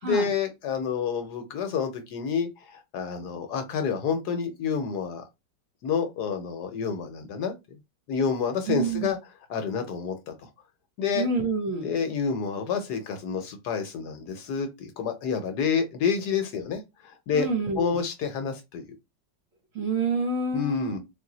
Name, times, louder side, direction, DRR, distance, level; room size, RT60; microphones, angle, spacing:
voice 1, 0.0-5.2 5.8-7.5 8.1-9.2 9.5-10.3 11.0-11.3 11.8-17.5 17.8-18.8 20.5-21.0, left 6 dB, 65° left, 1.2 m, -28 dB
voice 2, 8.7-9.1 11.1-11.9 17.3-18.0 19.7-21.0, right 4 dB, 55° right, 1.0 m, -28 dB
3.7 x 2.6 x 3.8 m
omnidirectional pair, 2.0 m